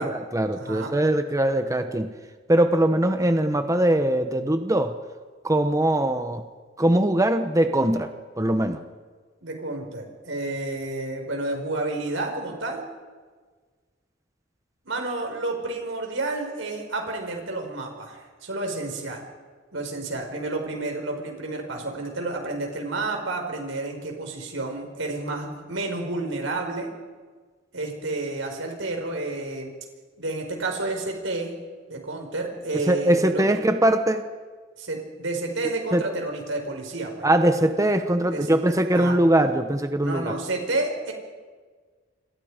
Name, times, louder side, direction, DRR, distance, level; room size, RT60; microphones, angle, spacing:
voice 1, 0.0-2.1 2.5-4.9 5.4-6.4 6.8-8.1 8.4-8.8 32.9-34.2 35.9-36.0 37.2-40.3, right 1 dB, 15° right, 7 dB, 1.1 m, -21 dB
voice 2, 0.5-0.9 9.4-12.8 14.8-19.2 19.7-26.9 27.7-29.7 30.2-31.6 31.9-33.4 34.8-37.3 38.3-38.5 39.0-39.2 40.0-41.1, right 2 dB, 90° right, 2 dB, 5.7 m, -30 dB
29.5 x 27.0 x 5.2 m, 1.5 s
head